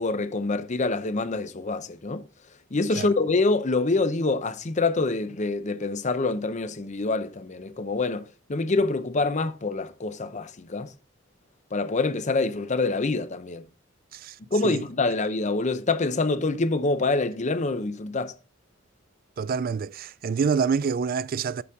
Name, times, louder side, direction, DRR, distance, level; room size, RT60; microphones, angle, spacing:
voice 1, 0.0-2.2 2.7-10.9 11.7-13.7 14.5-18.3, left 3 dB, 35° left, 0.7 m, -26 dB
voice 2, 19.4-21.6, right 5 dB, 45° right, 0.3 m, -27 dB
6.9 x 6.8 x 3.6 m
head